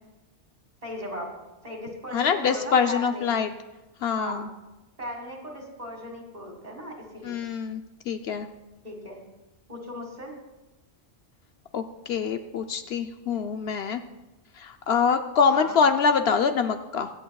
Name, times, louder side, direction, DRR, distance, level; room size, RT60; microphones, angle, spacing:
voice 1, 0.8-1.3 1.6-3.5 4.2-4.5 5.0-7.4 8.8-9.2 9.7-10.3 15.5-15.8, equal, 35° right, 1 dB, 2.0 m, -37 dB
voice 2, 2.1-3.5 4.0-4.5 7.2-8.5 11.7-14.0 14.5-17.1, left 6 dB, 70° left, 7 dB, 0.8 m, -25 dB
24.0 x 8.4 x 2.3 m, 1.0 s
omnidirectional pair, 1.2 m